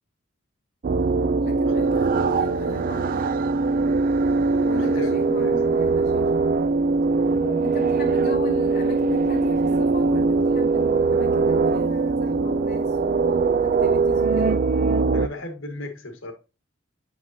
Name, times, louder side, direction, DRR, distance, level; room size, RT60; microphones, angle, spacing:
sound 1, 0.8-15.3, right 4 dB, 45° right, 0.3 m, -21 dB
voice 1, 1.4-3.3 4.6-6.4 7.6-13.2 13.6-14.6, left 2 dB, 50° left, 0.8 m, -36 dB
voice 2, 4.8-5.6 7.4-7.9 15.1-16.3, left 2 dB, 70° left, 1.4 m, -36 dB
7.7 x 5.1 x 2.7 m
head